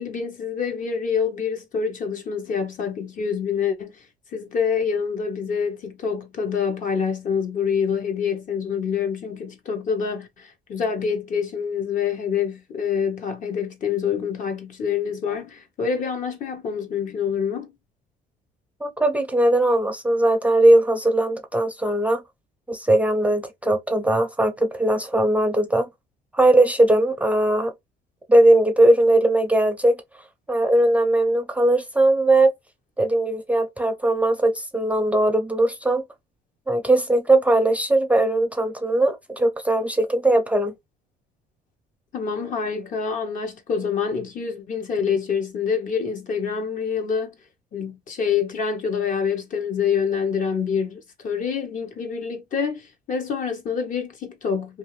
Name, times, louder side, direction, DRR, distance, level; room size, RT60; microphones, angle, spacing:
voice 1, 0.0-4.0 4.3-17.7 42.1-47.3 47.7-54.8, left 6 dB, 50° left, 0.9 m, -26 dB
voice 2, 18.8-22.2 22.7-25.9 26.3-27.7 28.3-29.9 30.5-32.5 33.0-36.0 36.7-40.7, right 1 dB, 10° right, 0.5 m, -19 dB
2.6 x 2.5 x 3.1 m
cardioid pair, 110°, 17 cm